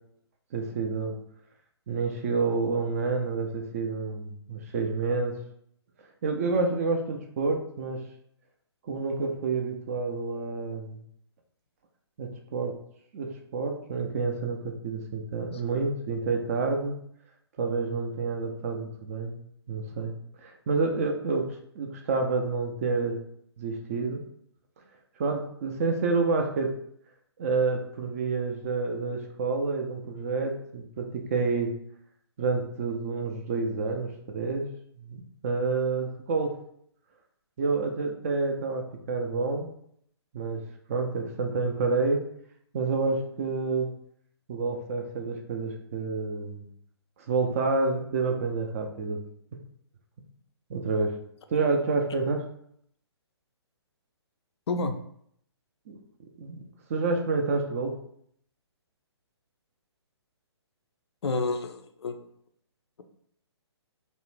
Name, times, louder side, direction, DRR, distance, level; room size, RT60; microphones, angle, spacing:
voice 1, 0.5-1.2 1.9-5.4 6.2-8.0 8.8-11.0 12.2-12.7 13.1-17.0 17.6-19.4 19.7-23.2 23.6-24.2 25.2-26.7 27.4-31.7 32.4-34.7 35.0-36.6 37.6-39.7 40.3-40.6 40.9-42.2 42.7-43.9 44.5-46.6 47.3-49.2 50.7-51.2 51.5-52.4 55.9-56.0 56.4-56.6 56.9-57.9, right 4 dB, 30° right, 4 dB, 0.3 m, -28 dB
voice 2, 61.2-62.2, left 3 dB, 70° left, 7 dB, 0.4 m, -29 dB
2.5 x 2.0 x 3.1 m, 0.68 s
figure-of-eight pair, 135°, 14 cm